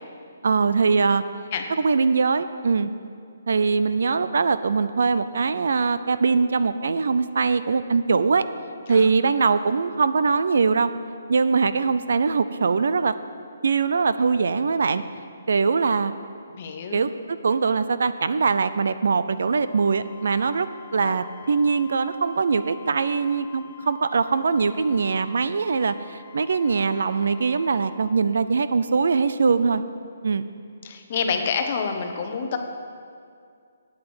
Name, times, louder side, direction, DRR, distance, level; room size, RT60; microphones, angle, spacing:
voice 1, 0.4-1.2 1.8-2.9 3.5-8.5 8.9-10.9 11.3-13.1 13.6-15.0 15.5-16.1 16.9-20.7 20.9-29.8 30.2-30.5, right 5 dB, 60° right, 13 dB, 0.5 m, -22 dB
voice 2, 16.5-17.0 21.0-21.2 30.8-32.6, left 6 dB, 30° left, 5 dB, 0.9 m, -28 dB
Wind instrument woodwind instrument, 19.5-28.1, left 12 dB, 50° left, 1.1 m, -47 dB
9.1 x 8.6 x 7.9 m, 2.3 s
hypercardioid pair, 175°, 0 cm